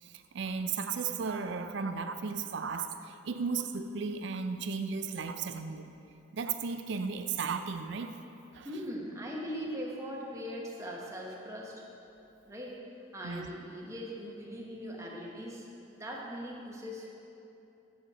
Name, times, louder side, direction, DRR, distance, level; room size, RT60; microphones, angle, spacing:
voice 1, 0.0-5.9 6.3-8.1 8.5-8.7 13.2-13.5, right 5 dB, 60° right, 9 dB, 0.4 m, -35 dB
voice 2, 8.6-11.7 12.5-12.8 13.1-15.7 16.0-17.1, equal, 15° right, -3 dB, 0.9 m, -40 dB
6.3 x 4.9 x 6.5 m, 2.9 s
head